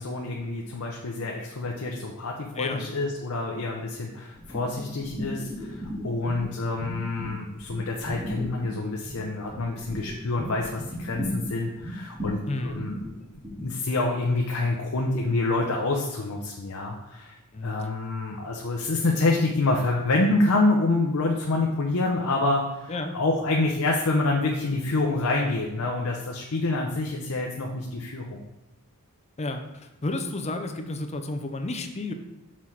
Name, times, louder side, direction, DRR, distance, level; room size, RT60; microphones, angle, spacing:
voice 1, 0.0-13.0 13.6-17.4 17.6-28.4, left 2 dB, 65° left, 0 dB, 0.7 m, -27 dB
voice 2, 2.5-2.9 12.5-12.8 17.5-17.8 22.9-23.1 29.4-32.1, left 2 dB, 30° left, 6 dB, 0.6 m, -31 dB
sound 1, 4.4-6.5 6.7-13.6, equal, 25° right, 1.8 m, -35 dB
6.0 x 4.3 x 4.6 m, 0.93 s
head